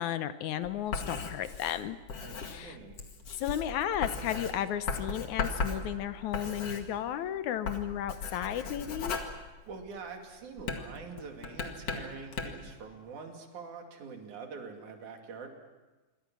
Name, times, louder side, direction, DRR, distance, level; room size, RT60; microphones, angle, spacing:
voice 1, 0.0-2.0 2.4-2.8 3.4-9.2, left 10 dB, 70° left, 12 dB, 2.1 m, -34 dB
Writing, 0.6-7.3 7.6-10.1 10.6-12.7, left 4 dB, 50° left, 2.8 m, -37 dB
voice 2, 2.2-3.0 9.7-15.5, right 5 dB, 60° right, 3 dB, 4.0 m, -45 dB
27.5 x 23.0 x 6.2 m, 1.2 s
omnidirectional pair, 3.9 m